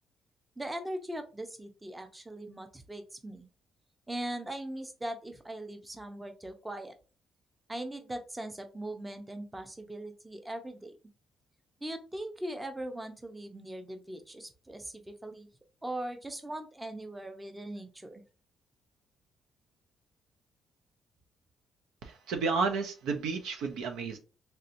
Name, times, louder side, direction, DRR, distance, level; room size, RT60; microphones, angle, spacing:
voice 1, 0.6-3.5 4.1-6.9 7.7-10.9 11.8-15.5 15.8-18.2, right 1 dB, 15° right, 7 dB, 0.6 m, -40 dB
voice 2, 22.0-24.2, right 4 dB, 90° right, 5 dB, 0.6 m, -31 dB
3.3 x 2.8 x 2.6 m, 0.34 s
cardioid pair, 90°, 0 cm